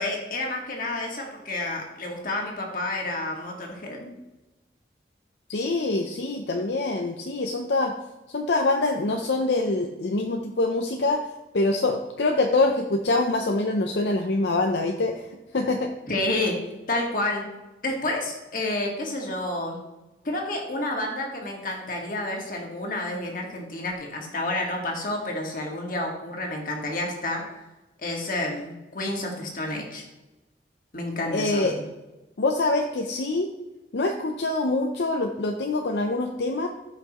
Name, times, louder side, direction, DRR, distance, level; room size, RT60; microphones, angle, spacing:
voice 1, 0.0-4.1 16.1-16.5 16.9-17.4 17.8-19.8 20.2-27.4 28.0-30.0 30.9-31.8, left 2 dB, 50° left, 0 dB, 1.7 m, -30 dB
voice 2, 5.5-7.9 8.3-11.3 11.5-15.3 15.5-15.9 31.3-31.8 32.4-33.5 33.9-36.7, left 2 dB, 75° left, 3 dB, 0.6 m, -25 dB
14.0 x 5.8 x 3.0 m, 1.0 s
head